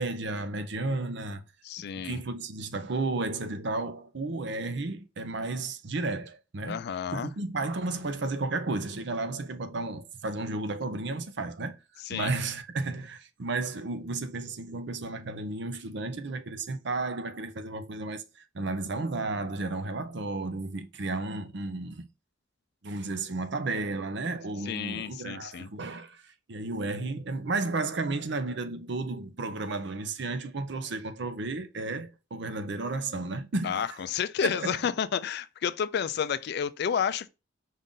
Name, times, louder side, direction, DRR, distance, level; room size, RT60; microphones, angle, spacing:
voice 1, 0.0-1.4 1.8-6.8 7.1-11.8 12.1-22.0 22.8-34.0 34.4-34.8, right 3 dB, 65° right, 0.6 m, -33 dB
voice 2, 1.6-2.2 6.7-7.3 12.1-12.3 24.7-25.7 33.6-37.3, left 7 dB, 55° left, 0.3 m, -30 dB
5.3 x 2.5 x 3.7 m
head